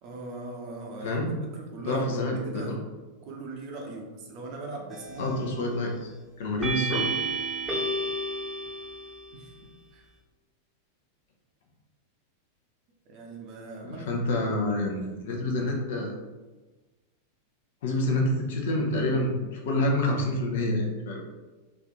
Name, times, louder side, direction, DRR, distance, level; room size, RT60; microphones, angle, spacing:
voice 1, 0.0-1.2 1.5-2.8 3.2-5.4 9.3-10.0 13.1-14.2, right 2 dB, 40° right, 0 dB, 0.8 m, -40 dB
voice 2, 1.9-2.8 5.2-6.1 6.4-7.1 13.9-16.1 17.8-21.2, left 1 dB, 55° left, 1 dB, 0.7 m, -27 dB
sound 1, 4.9-5.4 6.6-9.4, right 2 dB, 10° right, 0.9 m, -31 dB
3.3 x 2.7 x 3.8 m, 1.2 s
figure-of-eight pair, 90°, 0 cm